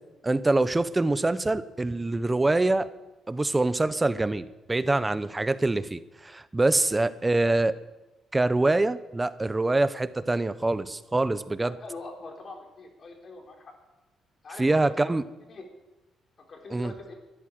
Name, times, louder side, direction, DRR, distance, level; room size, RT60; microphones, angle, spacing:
voice 1, 0.2-2.9 3.3-7.8 8.3-11.7 14.6-15.2 16.7-16.9, right 2 dB, 20° right, 14 dB, 0.8 m, -25 dB
voice 2, 11.6-13.7 14.4-14.9 15.5-15.7 16.5-17.1, left 3 dB, 45° left, 1 dB, 4.1 m, -43 dB
12.5 x 11.0 x 9.1 m, 1.0 s
cardioid pair, 90°, 0 cm